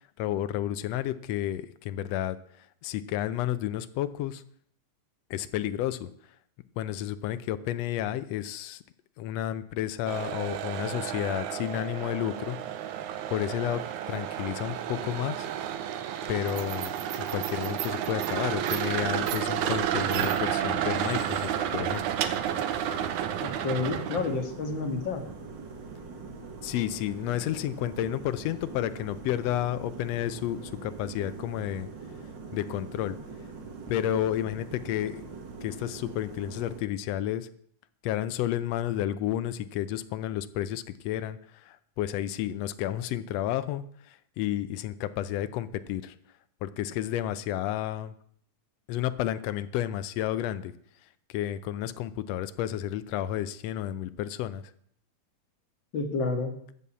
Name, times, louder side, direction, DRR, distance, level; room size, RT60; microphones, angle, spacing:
voice 1, 0.2-4.4 5.3-6.1 6.8-8.8 9.2-12.6 12.9-13.0 13.3-15.5 16.3-16.9 17.2-22.0 26.6-31.9 32.5-33.2 33.9-35.2 35.6-37.5 38.0-46.2 46.6-48.1 48.9-50.7 51.3-54.7, left 12 dB, 80° left, 13 dB, 1.5 m, -31 dB
sound 1, 10.1-24.4, right 10 dB, 75° right, 2.2 m, -31 dB
sound 2, 18.9-36.8, right 4 dB, 45° right, 1.8 m, -43 dB
voice 2, 23.4-25.2 55.9-56.5, left 3 dB, 45° left, 4 dB, 1.9 m, -29 dB
14.0 x 5.6 x 8.4 m, 0.64 s
omnidirectional pair, 3.6 m